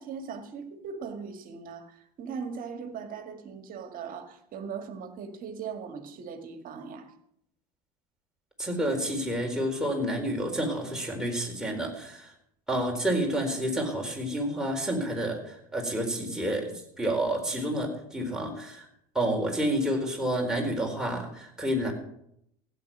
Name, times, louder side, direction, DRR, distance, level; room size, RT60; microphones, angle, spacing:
voice 1, 0.0-7.1, right 6 dB, 45° right, 7 dB, 2.0 m, -39 dB
voice 2, 8.6-12.3 12.7-18.9 19.1-21.9, right 1 dB, 5° right, 0 dB, 4.3 m, -29 dB
16.0 x 9.2 x 6.3 m, 0.75 s
hypercardioid pair, 70°, 20 cm